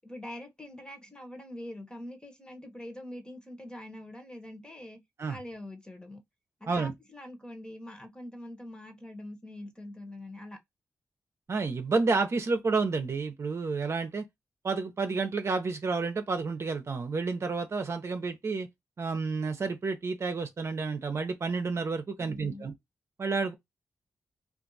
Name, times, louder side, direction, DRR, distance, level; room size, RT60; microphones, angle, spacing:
voice 1, 0.0-5.0 5.2-6.2 6.6-10.6 22.2-22.7, left 1 dB, 15° left, 1.1 m, -44 dB
voice 2, 11.5-14.2 14.6-18.7 19.0-22.7 23.2-23.5, right 4 dB, 50° right, 0.7 m, -30 dB
2.5 x 2.4 x 3.9 m
cardioid pair, 65°, 6 cm